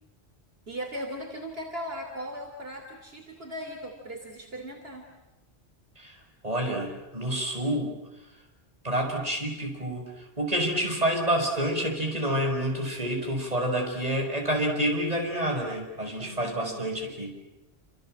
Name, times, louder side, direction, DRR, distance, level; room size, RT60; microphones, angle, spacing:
voice 1, 0.7-5.1 16.2-16.9, equal, 65° right, 3 dB, 3.3 m, -38 dB
voice 2, 6.4-8.0 8.8-17.4, right 1 dB, 35° right, 2 dB, 5.8 m, -28 dB
29.0 x 27.0 x 7.7 m, 0.98 s
omnidirectional pair, 1.1 m